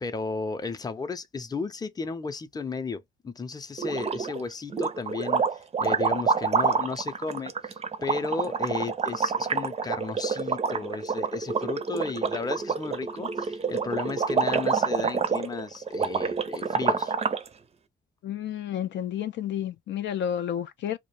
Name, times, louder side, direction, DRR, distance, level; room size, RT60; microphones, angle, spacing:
voice 1, 0.0-7.8 8.0-17.1, left 4 dB, 20° left, 0.6 m, -34 dB
sound 1, 3.8-4.4 4.7-17.5, right 5 dB, 30° right, 0.5 m, -27 dB
voice 2, 18.2-21.0, left 10 dB, 65° left, 0.4 m, -31 dB
2.4 x 2.1 x 3.1 m
cardioid pair, 90°, 20 cm